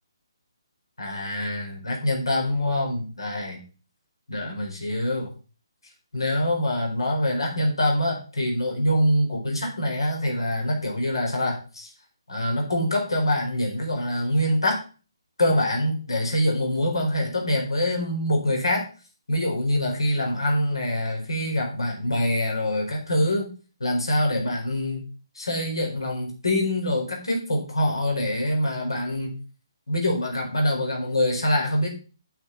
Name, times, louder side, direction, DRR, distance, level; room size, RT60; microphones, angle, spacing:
voice 1, 1.0-3.6 4.3-5.3 6.1-11.9 12.3-14.8 15.4-18.8 19.3-23.5 23.8-25.0 25.3-29.3 29.9-31.9, left 1 dB, 80° left, 1 dB, 4.4 m, -25 dB
9.2 x 6.8 x 4.0 m, 0.36 s
figure-of-eight pair, 145°, 3 cm